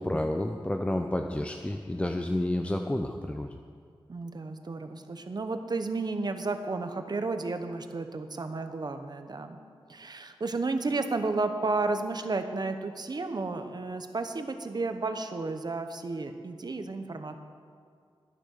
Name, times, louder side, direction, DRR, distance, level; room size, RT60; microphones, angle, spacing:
voice 1, 0.0-3.6, left 1 dB, 15° left, 4 dB, 0.6 m, -30 dB
voice 2, 4.1-9.6 9.9-17.4, right 3 dB, 45° right, 7 dB, 1.0 m, -32 dB
12.5 x 10.0 x 6.6 m, 2.3 s
wide cardioid pair, 110°, 10 cm